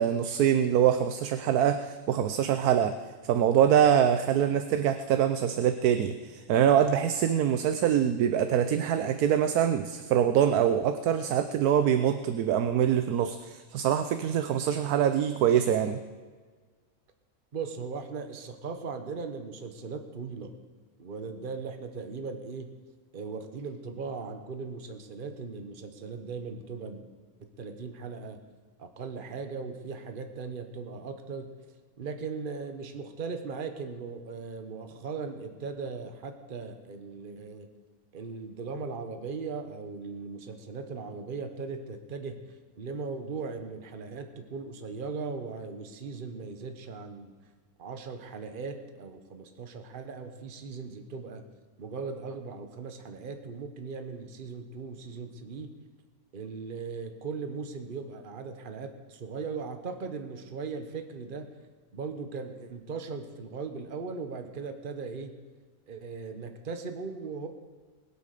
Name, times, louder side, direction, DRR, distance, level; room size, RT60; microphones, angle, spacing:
voice 1, 0.0-2.9 3.2-16.0, right 9 dB, 85° right, 9 dB, 1.2 m, -24 dB
voice 2, 17.5-20.5 21.0-22.7 23.1-27.0 27.4-28.4 28.8-31.5 32.0-37.7 38.1-42.4 42.8-47.3 47.8-51.4 51.8-55.7 56.3-61.5 61.9-65.3 65.9-67.5, right 4 dB, 40° right, 7 dB, 1.2 m, -38 dB
21.0 x 8.3 x 6.7 m, 1.5 s
omnidirectional pair, 1.6 m